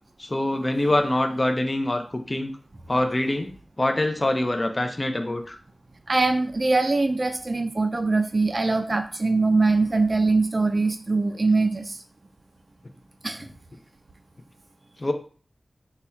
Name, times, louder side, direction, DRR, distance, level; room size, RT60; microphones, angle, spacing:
voice 1, 0.2-2.5 2.9-5.6 15.0-15.1, left 1 dB, 30° left, 5 dB, 0.5 m, -25 dB
voice 2, 6.1-12.0 13.2-13.5, right 3 dB, 40° right, 6 dB, 0.4 m, -22 dB
4.1 x 2.3 x 4.3 m, 0.42 s
wide cardioid pair, 85°, 0 cm